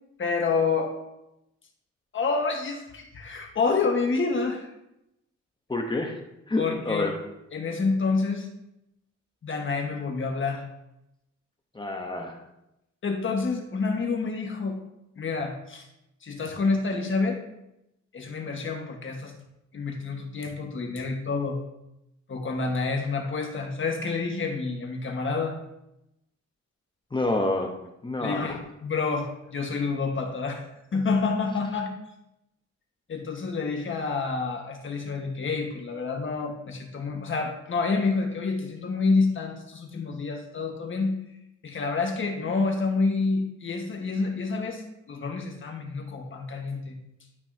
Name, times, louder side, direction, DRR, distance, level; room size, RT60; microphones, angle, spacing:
voice 1, 0.2-1.0 2.1-4.7 6.6-7.1 7.5-8.5 9.4-10.6 13.0-14.8 15.2-15.9 16.2-17.4 18.1-19.3 19.7-21.6 22.3-25.6 28.2-30.6 30.9-31.9 33.1-41.1 41.6-47.0, left 4 dB, 45° left, 3 dB, 1.5 m, -28 dB
voice 2, 5.7-6.1 6.5-7.1 11.7-12.3 27.1-27.7 28.0-28.6, left 2 dB, 15° left, 1 dB, 1.0 m, -28 dB
12.0 x 5.4 x 2.8 m, 0.85 s
cardioid pair, 115°, 29 cm